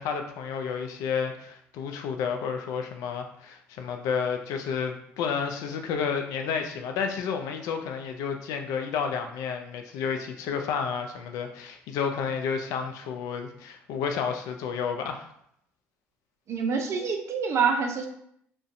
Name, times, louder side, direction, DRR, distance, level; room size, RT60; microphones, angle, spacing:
voice 1, 0.0-15.3, left 6 dB, 70° left, 5 dB, 0.4 m, -31 dB
voice 2, 16.5-18.1, right 5 dB, 50° right, 4 dB, 0.5 m, -26 dB
2.4 x 2.1 x 2.6 m, 0.72 s
hypercardioid pair, 65°, 6 cm